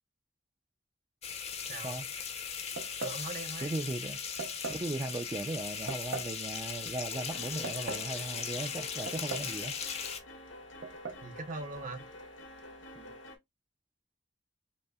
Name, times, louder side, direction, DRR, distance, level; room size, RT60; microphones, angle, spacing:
sound 1, 1.2-10.2, left 7 dB, 35° left, 0.5 m, -38 dB
voice 1, 1.7-2.0 3.0-3.8 11.2-12.1, right 3 dB, 45° right, 0.7 m, -41 dB
sound 2, 2.8-3.3 4.4-4.9 5.9-6.4 7.4-8.1 9.1-9.6 9.8-9.9 10.8-11.2, right 4 dB, 90° right, 0.7 m, -39 dB
voice 2, 3.6-4.2 4.7-9.7 13.0-13.2, right 2 dB, 20° right, 0.3 m, -37 dB
sound 3, 7.1-13.4, left 1 dB, 85° left, 0.9 m, -49 dB
5.2 x 2.0 x 2.3 m
head